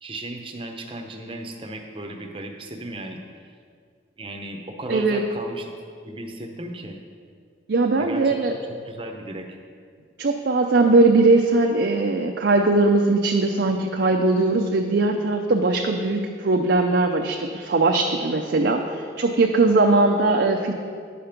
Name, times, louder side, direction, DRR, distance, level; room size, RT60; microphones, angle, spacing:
voice 1, 0.0-3.2 4.2-5.7 6.0-7.0 8.0-8.4 8.8-9.5, right 1 dB, 30° right, 4 dB, 0.7 m, -35 dB
voice 2, 4.9-5.2 7.7-8.5 10.2-20.7, right 3 dB, 70° right, 1 dB, 0.5 m, -20 dB
10.0 x 5.1 x 5.8 m, 2.1 s
head